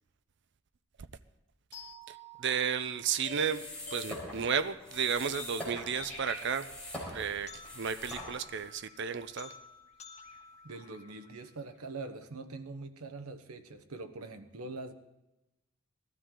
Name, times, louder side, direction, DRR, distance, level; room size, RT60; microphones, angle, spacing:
sound 1, 1.7-11.7, left 3 dB, 30° left, 1.6 m, -51 dB
voice 1, 2.1-3.7 3.9-6.7 7.1-9.5, right 7 dB, 55° right, 0.6 m, -33 dB
sound 2, 3.3-8.7, left 1 dB, 5° left, 4.2 m, -44 dB
voice 2, 10.3-14.9, right 3 dB, 80° right, 1.0 m, -43 dB
19.0 x 13.0 x 3.8 m
head